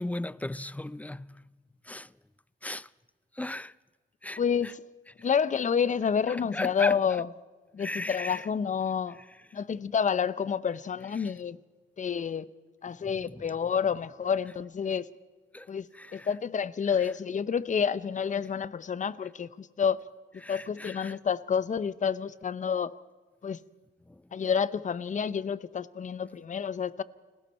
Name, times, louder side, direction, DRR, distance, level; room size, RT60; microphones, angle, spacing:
voice 1, 0.0-1.4 1.8-2.1 2.6-2.9 3.4-3.7 4.2-4.4 5.2-5.3 6.3-7.2 7.8-8.5 11.2-11.3 13.0-13.4 15.5-15.7 15.9-16.3 20.4-21.2 24.1-24.2, left 1 dB, 5° left, 0.5 m, -37 dB
voice 2, 4.4-4.8 5.2-7.3 7.7-9.2 9.5-11.6 12.0-12.5 12.8-15.1 15.7-15.9 16.1-20.0 20.5-22.9 23.4-23.6 24.3-27.0, left 7 dB, 40° left, 0.9 m, -29 dB
29.5 x 21.0 x 4.4 m
cardioid pair, 90°, 20 cm